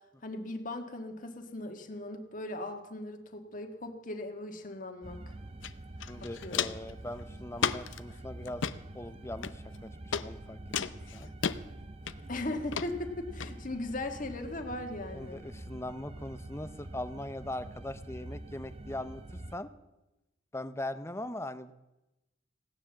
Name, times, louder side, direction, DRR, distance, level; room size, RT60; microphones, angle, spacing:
voice 1, 0.2-5.3 6.4-6.7 12.3-15.4, left 2 dB, 45° left, 4 dB, 1.7 m, -38 dB
sound 1, 5.0-19.6, right 1 dB, 30° right, 0.6 m, -46 dB
Walk footsteps, 5.6-5.7 6.0-6.9 7.6-8.0 8.5-8.8 9.4-9.8 10.1-10.3 10.7-11.6 12.1-12.4 12.7-12.9 13.4-13.5, left 7 dB, 80° left, 0.6 m, -32 dB
voice 2, 6.0-8.6 8.9-10.6 10.9-11.3 15.1-19.7 20.5-21.7, left 1 dB, 15° left, 12 dB, 0.7 m, -40 dB
17.0 x 10.0 x 7.3 m, 0.97 s
head